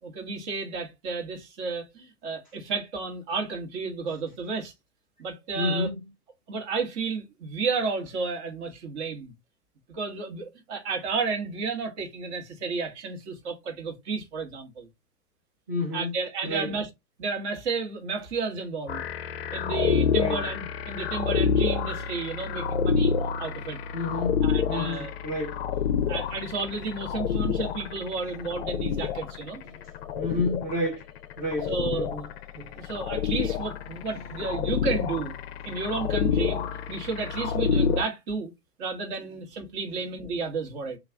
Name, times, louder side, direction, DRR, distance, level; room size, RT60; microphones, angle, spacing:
voice 1, 0.0-4.7 5.2-5.9 6.5-9.3 9.9-14.9 15.9-16.9 17.2-19.0 19.5-23.1 23.4-23.8 24.4-25.1 26.1-29.6 31.7-32.1 32.7-35.3 35.6-38.5 38.8-41.0, right 4 dB, 45° right, 1.2 m, -32 dB
voice 2, 5.5-6.0 15.7-16.1 16.4-16.8 20.1-20.4 23.9-25.6 29.6-29.8 30.2-31.0 31.4-32.3 32.6-32.7, left 2 dB, 15° right, 0.4 m, -30 dB
sound 1, 18.9-38.0, left 7 dB, 45° left, 0.4 m, -28 dB
3.2 x 2.4 x 3.4 m
hypercardioid pair, 115°, 46 cm